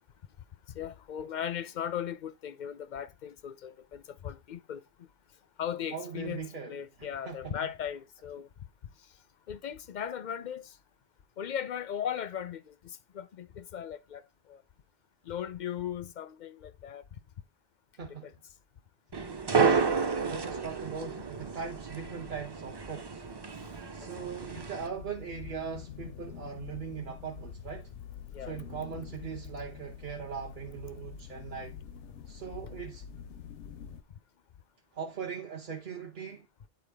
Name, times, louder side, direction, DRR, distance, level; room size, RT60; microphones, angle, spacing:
voice 1, 0.7-4.8 5.6-8.5 9.5-10.8 11.4-14.6 15.3-17.0 18.1-18.3 24.0-24.2 28.3-28.5, left 9 dB, 55° left, 0.6 m, -38 dB
voice 2, 5.9-7.5 18.0-18.3 19.5-19.9 20.2-23.2 23.9-27.9 28.4-31.8 32.3-33.0 34.9-36.5, right 6 dB, 50° right, 0.9 m, -40 dB
sound 1, 19.1-24.9, right 5 dB, 30° right, 0.5 m, -31 dB
sound 2, 24.8-34.0, left 8 dB, 85° left, 1.0 m, -46 dB
9.2 x 4.3 x 3.4 m
omnidirectional pair, 1.1 m